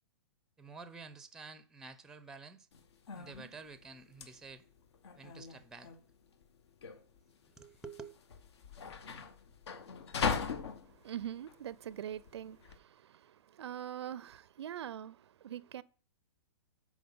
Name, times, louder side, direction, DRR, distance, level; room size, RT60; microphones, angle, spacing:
voice 1, 0.6-2.7 3.1-4.6 5.1-5.9 7.5-8.1, right 4 dB, 5° right, 0.5 m, -50 dB
sound 1, 2.7-12.8, left 6 dB, 70° left, 1.0 m, -40 dB
voice 2, 10.8-15.8, right 10 dB, 70° right, 0.5 m, -43 dB
7.8 x 4.9 x 5.5 m
hypercardioid pair, 140°, 15 cm